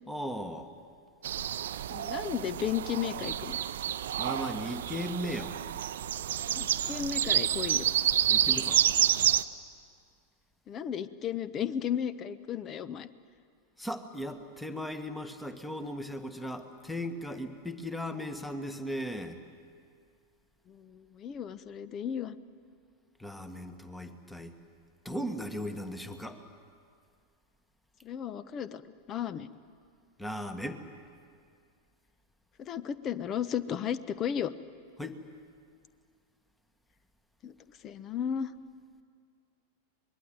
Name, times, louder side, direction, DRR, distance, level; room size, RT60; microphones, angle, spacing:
voice 1, 0.1-0.7 4.2-5.6 8.3-8.9 13.8-19.4 23.2-24.5 25.0-26.4 30.2-30.8 35.0-35.2, equal, 5° left, 8 dB, 1.5 m, -37 dB
sound 1, 1.2-9.4, right 11 dB, 60° right, 0.6 m, -29 dB
voice 2, 1.9-3.6 6.6-7.8 10.7-13.1 20.7-22.4 28.0-28.8 29.1-29.5 32.6-34.5 37.4-37.5 37.8-38.5, left 9 dB, 30° left, 15 dB, 0.9 m, -34 dB
25.0 x 21.5 x 9.4 m, 2.2 s
figure-of-eight pair, 90°, 0 cm